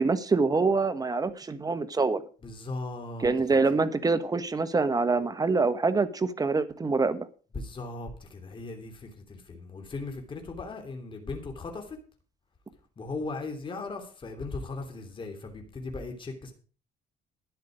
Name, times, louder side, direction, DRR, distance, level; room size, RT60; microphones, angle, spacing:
voice 1, 0.0-2.2 3.2-7.3, right 4 dB, 20° right, 11 dB, 1.3 m, -25 dB
voice 2, 2.4-3.6 7.5-12.0 13.0-16.5, left 3 dB, 30° left, 4 dB, 3.1 m, -38 dB
12.5 x 10.5 x 5.1 m, 0.38 s
cardioid pair, 110°, 17 cm